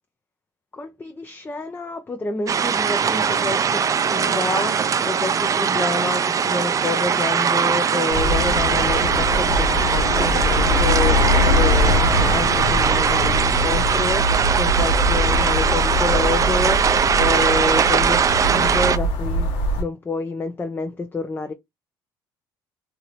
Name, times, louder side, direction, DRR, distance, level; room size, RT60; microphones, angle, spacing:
voice 1, 0.7-19.5 19.8-21.5, left 3 dB, 20° left, 0.5 m, -28 dB
sound 1, 2.5-19.0, right 7 dB, 35° right, 0.4 m, -20 dB
sound 2, 8.1-19.8, left 2 dB, 80° left, 1.1 m, -22 dB
2.8 x 2.7 x 3.1 m
supercardioid pair, 80°, 10 cm